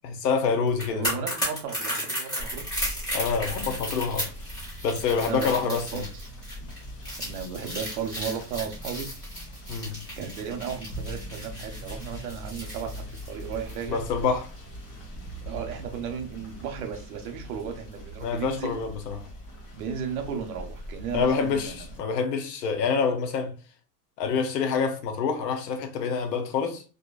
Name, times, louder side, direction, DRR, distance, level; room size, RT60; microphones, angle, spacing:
voice 1, 0.0-1.2 3.1-4.3 4.8-6.0 9.7-10.0 13.9-14.5 18.2-19.2 21.1-23.5 24.2-26.8, left 5 dB, 85° left, 0.8 m, -27 dB
sound 1, 0.7-13.8 14.1-14.3, equal, 10° left, 0.5 m, -34 dB
voice 2, 0.9-2.7 5.3-6.1 6.6-6.7 7.2-9.1 10.2-14.0 15.4-18.8 19.7-21.9, right 7 dB, 65° right, 0.7 m, -35 dB
Rain / Motor vehicle (road), 2.4-22.0, equal, 35° left, 1.1 m, -41 dB
2.6 x 2.1 x 2.3 m
supercardioid pair, 155°, 48 cm